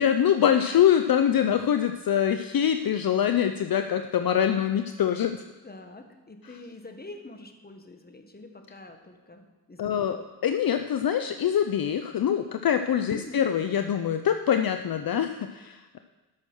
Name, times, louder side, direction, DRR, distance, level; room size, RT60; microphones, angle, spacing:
voice 1, 0.0-5.4 9.8-16.0, left 9 dB, 55° left, 8 dB, 0.6 m, -24 dB
voice 2, 5.6-10.1 13.1-13.5, left 2 dB, 20° left, 5 dB, 1.6 m, -45 dB
13.0 x 6.3 x 6.2 m, 1.2 s
cardioid pair, 60°, 41 cm